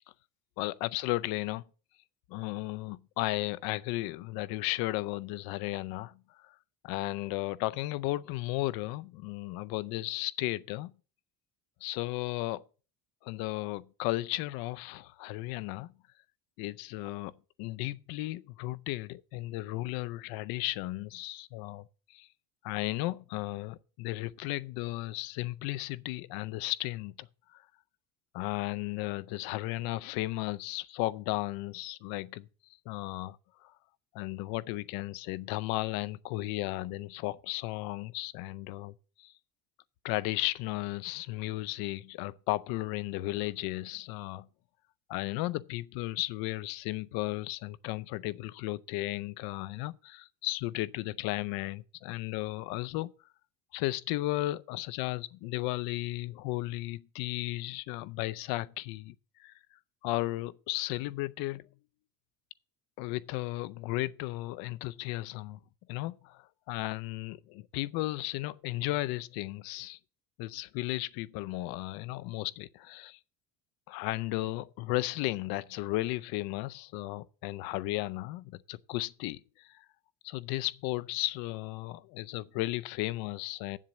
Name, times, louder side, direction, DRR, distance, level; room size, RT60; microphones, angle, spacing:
voice 1, 0.6-1.6 2.3-6.6 6.8-10.9 11.8-12.7 13.2-15.9 16.6-17.3 17.6-22.3 22.6-27.6 28.3-32.5 32.9-33.7 34.1-39.3 40.0-44.5 45.1-53.1 53.7-59.1 59.4-61.7 63.0-65.6 65.9-70.0 70.4-73.2 73.9-79.8 80.2-83.8, left 18 dB, 60° left, 0.6 m, -35 dB
7.9 x 7.4 x 7.3 m
cardioid pair, 180°, 40 cm